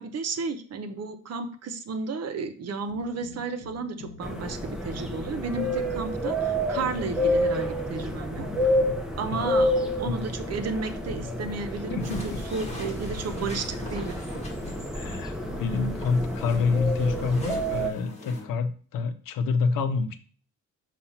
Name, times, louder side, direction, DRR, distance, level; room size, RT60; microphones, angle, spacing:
voice 1, 0.0-8.5 9.2-14.3, right 4 dB, 50° right, 8 dB, 0.8 m, -33 dB
sound 1, 2.9-18.6, left 3 dB, 50° left, 1.2 m, -44 dB
sound 2, 4.2-17.9, equal, ahead, 0.8 m, -29 dB
voice 2, 11.9-12.4 14.9-15.3 15.6-20.2, left 4 dB, 90° left, 10 dB, 0.7 m, -27 dB
sound 3, 12.0-18.4, left 1 dB, 20° left, 1.7 m, -45 dB
6.9 x 2.5 x 5.6 m, 0.43 s
cardioid pair, 125°, 32 cm